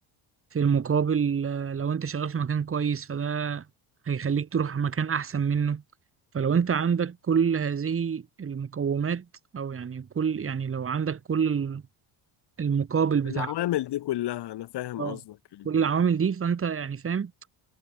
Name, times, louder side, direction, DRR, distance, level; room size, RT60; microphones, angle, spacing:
voice 1, 0.5-3.6 4.1-5.8 6.3-9.2 9.5-11.8 12.6-13.5 15.0-15.2 15.6-17.3, right 6 dB, 25° right, 1.3 m, -26 dB
voice 2, 13.2-15.7, left 14 dB, 55° left, 1.1 m, -31 dB
cardioid pair, 90°, 47 cm